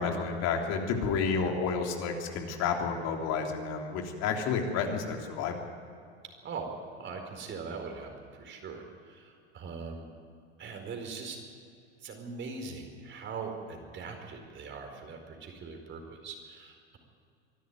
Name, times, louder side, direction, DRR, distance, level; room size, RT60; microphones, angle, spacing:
voice 1, 0.0-5.5, left 5 dB, 50° left, 2 dB, 3.3 m, -30 dB
voice 2, 6.4-10.1 10.6-11.4 12.0-17.0, right 4 dB, 35° right, 4 dB, 4.6 m, -41 dB
24.0 x 12.5 x 9.6 m, 2.4 s
hypercardioid pair, 95°, 34 cm